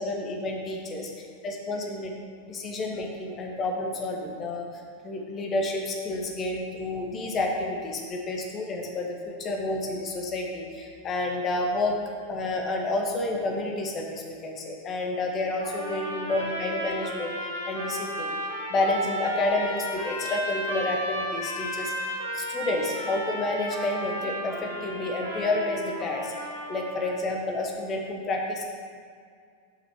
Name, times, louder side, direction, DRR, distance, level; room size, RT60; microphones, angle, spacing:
voice 1, 0.0-1.1 1.4-2.1 2.5-4.7 5.0-11.9 12.3-18.3 18.7-21.9 22.3-26.3 26.7-28.6, left 2 dB, 25° left, 1 dB, 1.1 m, -30 dB
sound 1, 15.6-27.1, equal, 85° left, 1.5 m, -34 dB
6.1 x 5.6 x 4.7 m, 2.1 s
figure-of-eight pair, 90°, 0 cm